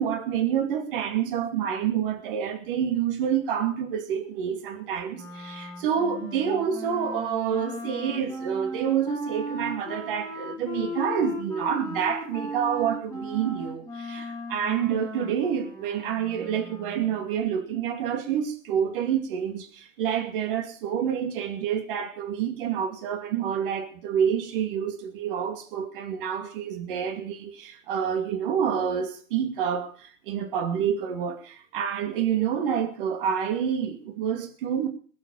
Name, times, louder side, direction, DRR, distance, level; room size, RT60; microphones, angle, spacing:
voice 1, 0.0-34.9, right 8 dB, 45° right, 2.5 m, -28 dB
Wind instrument woodwind instrument, 5.1-17.2, left 1 dB, 10° left, 2.8 m, -37 dB
20.5 x 8.0 x 7.2 m
hypercardioid pair, 125°, 38 cm